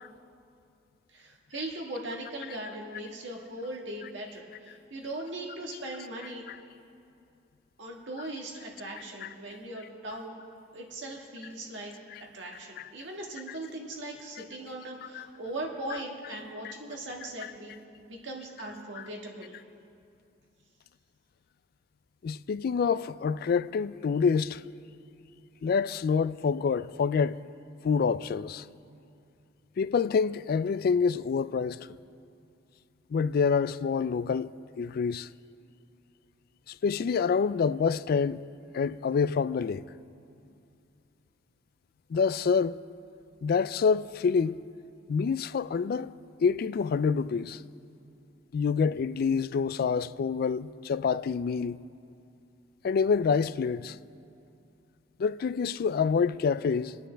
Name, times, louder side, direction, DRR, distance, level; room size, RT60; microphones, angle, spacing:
voice 1, 1.1-6.4 7.8-10.4 10.7-11.9 12.3-17.7 18.0-19.6, right 1 dB, 85° right, 1.6 m, -39 dB
voice 2, 22.2-24.6 25.6-27.4 27.8-28.6 29.8-31.9 33.1-35.3 36.7-38.4 38.7-39.8 42.1-42.8 43.4-44.6 45.1-47.6 48.5-51.8 52.8-54.0 55.2-57.0, left 5 dB, 55° left, 0.3 m, -27 dB
28.5 x 9.8 x 3.4 m
head